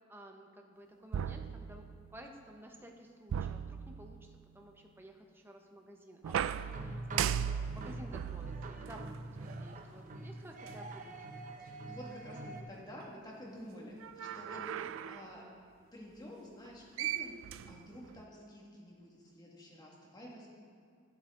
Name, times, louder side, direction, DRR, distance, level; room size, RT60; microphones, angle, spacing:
voice 1, 0.0-1.9 2.1-11.5 14.5-14.9, equal, 10° right, 2 dB, 0.9 m, -53 dB
sound 1, 1.1-2.2 3.3-4.4 6.2-9.8 10.7-10.8 14.0-15.3 16.7-16.8 17.0-18.2, right 9 dB, 75° right, 0.3 m, -38 dB
sound 2, 6.4-12.6, right 1 dB, 40° right, 0.7 m, -45 dB
voice 2, 11.6-15.5 15.9-20.5, equal, 20° left, -3 dB, 1.9 m, -50 dB
12.5 x 8.3 x 3.8 m, 2.3 s
head